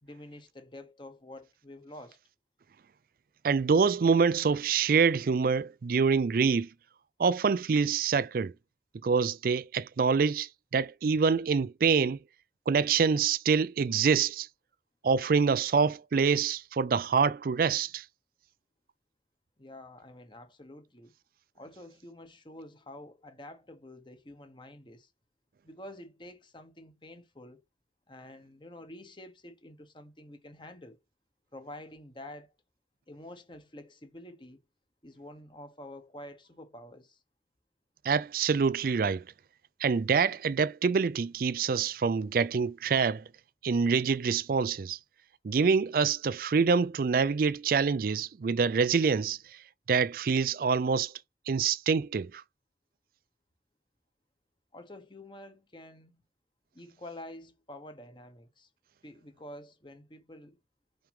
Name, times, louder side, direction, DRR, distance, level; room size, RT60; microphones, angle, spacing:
voice 1, 0.0-2.2 19.6-21.1 21.5-25.1 25.6-27.6 28.1-31.0 31.5-32.5 33.1-34.6 35.0-37.2 54.7-56.2 56.7-58.7 59.0-60.6, left 1 dB, 25° left, 1.2 m, -48 dB
voice 2, 3.4-6.7 7.2-8.5 9.0-12.2 12.7-14.5 15.0-18.0 38.0-39.2 39.8-43.2 43.6-45.0 45.4-49.4 49.9-51.1 51.5-52.4, right 5 dB, 55° right, 0.4 m, -26 dB
5.7 x 5.1 x 3.5 m
head